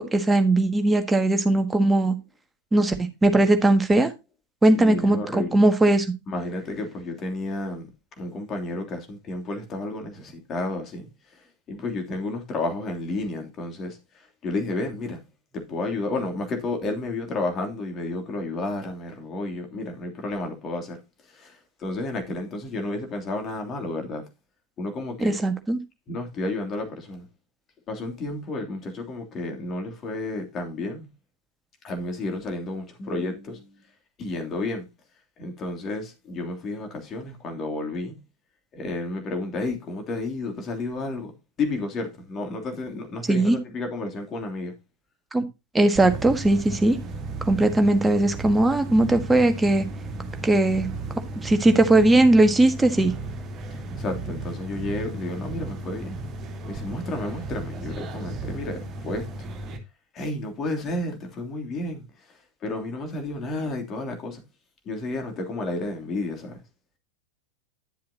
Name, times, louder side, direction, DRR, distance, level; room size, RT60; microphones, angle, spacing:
voice 1, 0.0-2.2 2.7-4.1 4.6-6.0 25.2-25.8 43.3-43.6 45.3-45.5 45.7-47.0 47.5-49.8 50.4-50.9 51.4-53.1, right 2 dB, 10° right, 1.6 m, -19 dB
voice 2, 4.8-5.6 6.3-7.9 8.2-11.1 11.7-14.0 14.4-15.2 15.5-21.0 21.3-24.2 24.8-25.4 26.1-27.2 27.9-31.1 31.8-33.7 34.2-34.9 35.4-38.2 38.7-41.3 41.6-44.7 54.0-56.2 56.6-59.3 60.1-62.0 62.6-64.4 64.8-66.6, left 2 dB, 30° left, 3.0 m, -31 dB
sound 1, 45.9-59.8, right 2 dB, 30° right, 2.5 m, -35 dB
11.0 x 7.5 x 2.8 m
figure-of-eight pair, 90°, 0 cm